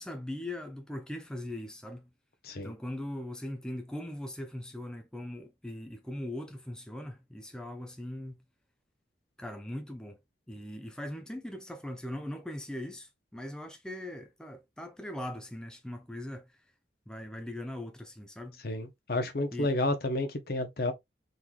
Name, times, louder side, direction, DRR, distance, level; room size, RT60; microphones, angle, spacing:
voice 1, 0.0-2.1 2.6-8.4 9.4-10.2 10.5-16.6 17.1-18.6 19.5-19.7, left 1 dB, 5° left, 0.4 m, -40 dB
voice 2, 18.6-20.9, left 2 dB, 60° left, 0.7 m, -31 dB
3.7 x 3.1 x 2.3 m
head